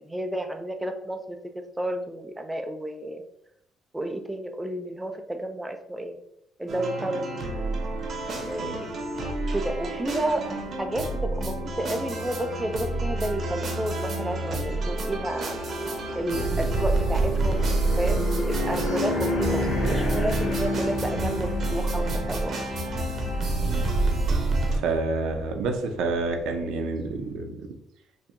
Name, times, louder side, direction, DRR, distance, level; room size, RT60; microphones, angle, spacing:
voice 1, 0.0-3.2 3.9-6.2 6.6-7.3 8.4-8.9 9.5-10.4 10.8-15.6 16.2-22.5, right 1 dB, 10° right, 4 dB, 0.4 m, -31 dB
sound 1, 6.7-24.8, right 2 dB, 45° right, 0.7 m, -28 dB
sound 2, 8.0-27.3, left 1 dB, 65° left, 1.1 m, -34 dB
voice 2, 24.8-27.7, right 3 dB, 80° right, 5 dB, 0.6 m, -29 dB
4.4 x 2.7 x 2.5 m, 0.74 s
cardioid pair, 135°, 0 cm